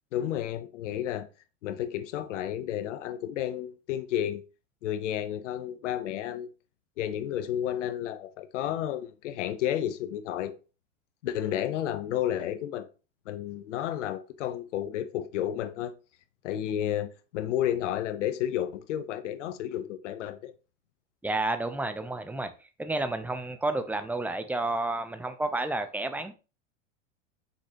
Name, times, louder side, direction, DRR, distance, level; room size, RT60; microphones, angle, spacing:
voice 1, 0.1-1.3 1.6-4.4 4.8-6.5 7.0-10.5 11.2-12.9 13.3-15.9 16.4-20.5, left 11 dB, 75° left, 1.1 m, -31 dB
voice 2, 21.2-22.5 22.8-26.3, right 2 dB, 5° right, 0.8 m, -30 dB
6.3 x 5.3 x 3.0 m
hypercardioid pair, 110°, 36 cm